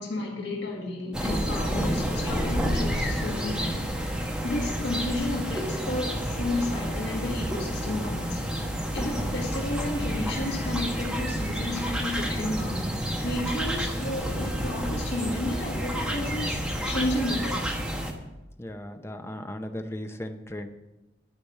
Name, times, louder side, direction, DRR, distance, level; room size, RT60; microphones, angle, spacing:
voice 1, 0.0-8.5 8.9-12.9 13.2-17.7, left 2 dB, 80° left, -2 dB, 1.9 m, -32 dB
sound 1, 1.1-18.1, equal, 5° right, 1.1 m, -29 dB
voice 2, 18.6-20.7, left 1 dB, 15° left, 6 dB, 0.7 m, -36 dB
10.0 x 5.2 x 8.0 m, 1.0 s
head